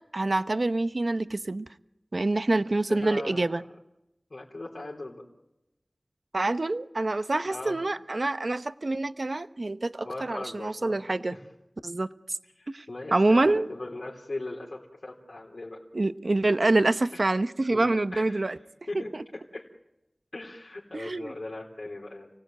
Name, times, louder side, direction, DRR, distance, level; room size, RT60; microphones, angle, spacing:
voice 1, 0.1-1.7 2.1-3.6 6.3-11.4 11.8-12.1 12.7-12.9 13.1-13.7 15.9-18.6 19.1-19.2 20.9-21.3, right 2 dB, 65° right, 11 dB, 0.9 m, -26 dB
voice 2, 2.6-3.6 4.3-5.2 7.4-7.8 10.1-11.4 12.6-15.8 17.1-17.2 17.7-18.6 18.9-19.7 20.3-22.3, left 2 dB, 80° left, -3 dB, 3.6 m, -39 dB
29.5 x 18.5 x 9.1 m, 0.90 s
wide cardioid pair, 55°, 0 cm